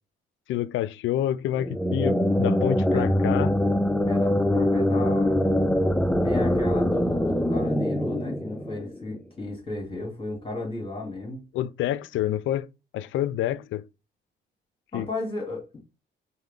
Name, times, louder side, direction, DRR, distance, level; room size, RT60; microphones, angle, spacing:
voice 1, 0.5-3.5 11.5-12.7 12.9-13.8 14.9-15.1, left 12 dB, 75° left, 0.4 m, -28 dB
sound 1, 1.6-9.2, left 1 dB, 5° left, 0.4 m, -23 dB
voice 2, 4.1-5.5 6.2-11.4 14.9-15.8, left 2 dB, 25° left, 2.5 m, -33 dB
4.5 x 2.1 x 3.7 m
cardioid pair, 90°, 20 cm